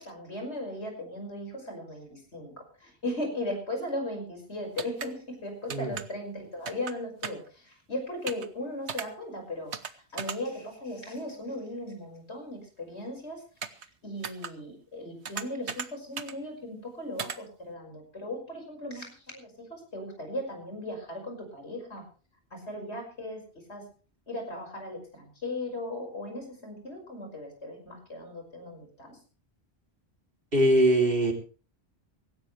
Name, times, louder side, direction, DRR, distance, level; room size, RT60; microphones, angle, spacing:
voice 1, 0.0-13.4 13.7-22.1 22.5-23.4 23.7-23.9 24.3-29.2, left 1 dB, 75° left, 3 dB, 6.0 m, -37 dB
sound 1, 4.8-5.1 5.7-6.0 6.7-6.9 7.2-7.5 8.3-8.5 8.9-9.1 9.7-9.9 10.2-10.4 13.6-13.9 14.2-14.5 15.3-15.9 16.2-16.3 17.2-17.4, right 6 dB, 80° right, 1.3 m, -35 dB
voice 2, 30.5-31.3, right 1 dB, 55° right, 3 dB, 3.4 m, -22 dB
17.5 x 17.0 x 3.3 m, 0.37 s
omnidirectional pair, 1.1 m